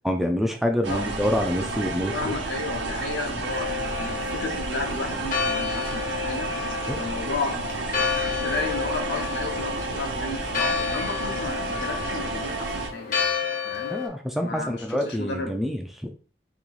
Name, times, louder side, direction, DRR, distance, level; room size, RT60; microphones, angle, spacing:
voice 1, 0.0-2.3 6.9-7.0 13.9-16.1, equal, ahead, 3 dB, 0.3 m, -26 dB
sound 1, 0.8-12.9, right 3 dB, 90° right, 0.8 m, -31 dB
voice 2, 0.9-1.2 2.1-8.0 8.4-13.3 13.6-14.0 14.4-15.5, left 3 dB, 80° left, 2 dB, 1.0 m, -33 dB
Church bell, 3.5-14.1, left 6 dB, 45° left, 0.8 m, -30 dB
3.1 x 3.0 x 3.9 m, 0.41 s
head